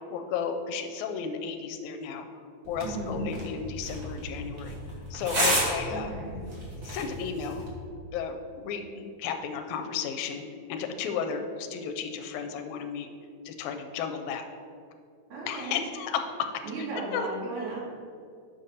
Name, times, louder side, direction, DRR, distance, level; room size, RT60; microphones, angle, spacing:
voice 1, 0.1-2.3 2.7-4.8 5.1-6.1 6.8-7.7 8.1-10.4 10.7-13.1 13.5-14.4 15.5-16.5 16.8-16.9 17.1-17.2, left 6 dB, 85° left, 6 dB, 2.0 m, -33 dB
sound 1, 2.7-7.7, right 1 dB, 45° right, 1.0 m, -32 dB
voice 2, 2.8-3.3 5.9-6.4 15.3-15.8 16.6-17.8, right 2 dB, 75° right, -7 dB, 3.3 m, -35 dB
7.2 x 5.2 x 4.1 m, 2.2 s
omnidirectional pair, 3.4 m